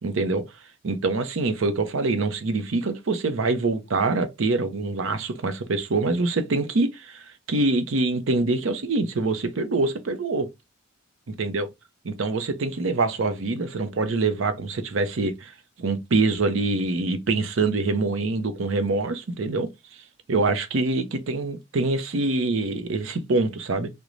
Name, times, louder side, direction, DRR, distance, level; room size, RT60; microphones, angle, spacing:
voice 1, 0.0-0.5 0.8-7.2 7.5-10.5 11.3-11.7 12.1-15.5 15.8-19.7 20.3-23.9, right 3 dB, 70° right, 0.6 m, -25 dB
3.8 x 2.1 x 3.0 m
head